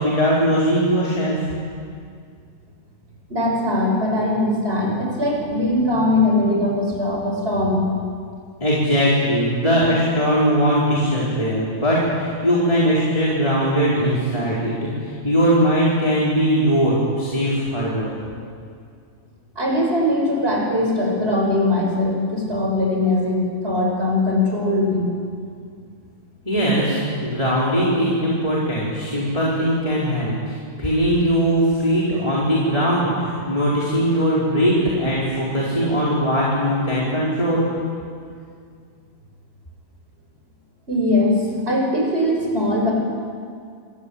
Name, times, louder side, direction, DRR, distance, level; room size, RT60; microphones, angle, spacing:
voice 1, 0.0-1.5 8.6-18.1 26.4-37.7, equal, 20° left, -7 dB, 4.9 m, -20 dB
voice 2, 3.3-7.8 19.6-25.1 40.9-42.9, left 1 dB, 35° right, -1 dB, 6.8 m, -21 dB
28.0 x 21.5 x 8.8 m, 2.2 s
omnidirectional pair, 1.8 m